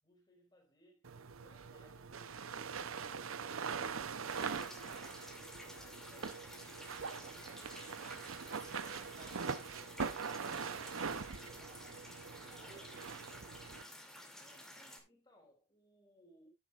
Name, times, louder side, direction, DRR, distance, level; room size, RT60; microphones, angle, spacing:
voice 1, 0.0-3.5 3.8-7.7 12.4-13.0 14.2-16.5, left 1 dB, 25° left, 4.1 m, -67 dB
sound 1, 1.0-13.8, right 5 dB, 80° right, 0.7 m, -43 dB
sound 2, 4.3-15.0, left 1 dB, ahead, 2.6 m, -53 dB
voice 2, 8.5-11.9 12.6-13.1 13.4-13.8, right 3 dB, 35° right, 4.8 m, -60 dB
11.0 x 10.0 x 2.4 m
head